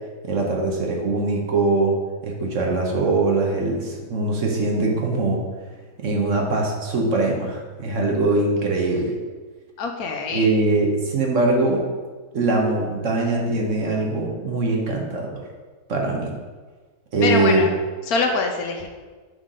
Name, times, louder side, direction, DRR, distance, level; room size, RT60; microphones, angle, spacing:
voice 1, 0.2-2.0 2.2-5.4 6.0-9.2 10.3-11.8 12.3-15.4 15.9-16.3 17.1-17.6, right 2 dB, 55° right, 0 dB, 1.2 m, -22 dB
voice 2, 9.8-10.5 17.2-17.7 18.1-18.9, left 4 dB, 70° left, 3 dB, 1.2 m, -24 dB
6.4 x 5.8 x 3.7 m, 1.4 s
omnidirectional pair, 1.7 m